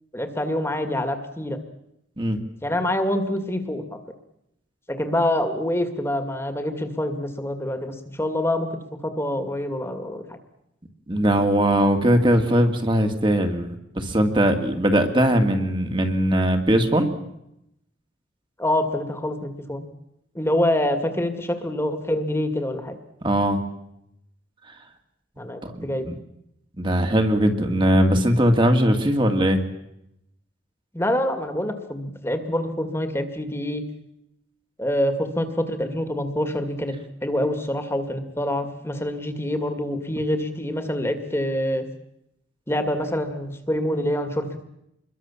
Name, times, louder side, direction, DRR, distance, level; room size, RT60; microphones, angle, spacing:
voice 1, 0.1-1.6 2.6-3.8 4.9-8.8 9.0-10.4 18.6-19.9 20.3-22.9 25.4-26.1 30.9-33.8 34.8-36.9 37.2-41.8 42.7-44.6, left 1 dB, 15° left, 7 dB, 2.1 m, -26 dB
voice 2, 11.1-17.1 23.2-23.6 25.6-26.1 26.8-29.6, equal, 25° right, 5 dB, 2.2 m, -20 dB
27.0 x 22.0 x 7.3 m, 0.82 s
head